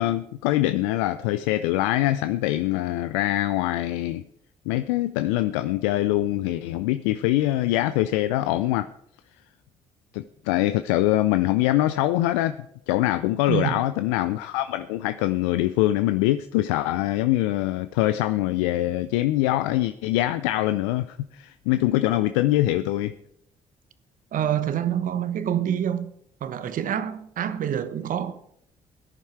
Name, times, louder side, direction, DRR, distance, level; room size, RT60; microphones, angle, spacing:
voice 1, 0.0-4.2 4.7-8.9 10.1-12.6 12.9-23.1, left 15 dB, 85° left, 0.5 m, -23 dB
voice 2, 13.5-13.9 24.3-26.1 26.4-28.4, right 10 dB, 60° right, 1.1 m, -27 dB
17.5 x 10.5 x 4.6 m
hypercardioid pair, 45°, 15 cm